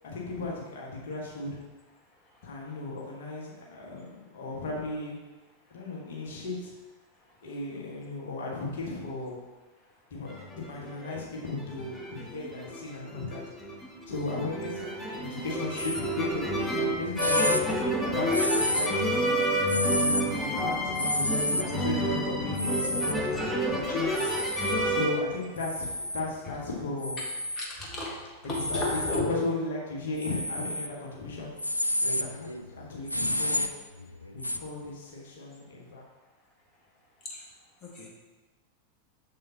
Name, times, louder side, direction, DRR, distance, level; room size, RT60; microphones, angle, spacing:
voice 1, 0.0-1.5 2.4-5.2 5.7-6.7 7.4-9.4 10.1-13.4 14.1-16.5 17.0-19.2 19.7-23.3 23.7-24.4 24.8-27.2 28.5-31.5 32.0-33.6 34.3-36.0, left 2 dB, 55° left, -4 dB, 1.6 m, -36 dB
sound 1, 10.4-11.2 11.5-25.1, equal, 10° left, 1.2 m, -29 dB
sound 2, 15.8-16.1 16.7-16.8 17.2-17.6 18.3-19.1 19.7-20.3 21.0-21.6 22.6-23.2 24.1-24.8 25.6-26.2 27.0-27.7 28.5-29.2 30.2-30.9 31.4-34.6, left 1 dB, 85° left, 0.3 m, -30 dB
voice 2, 27.6-28.1 28.5-29.3 37.9-38.1, left 2 dB, 30° left, -3 dB, 1.6 m, -33 dB
7.4 x 7.0 x 2.9 m, 1.2 s
figure-of-eight pair, 90°, 0 cm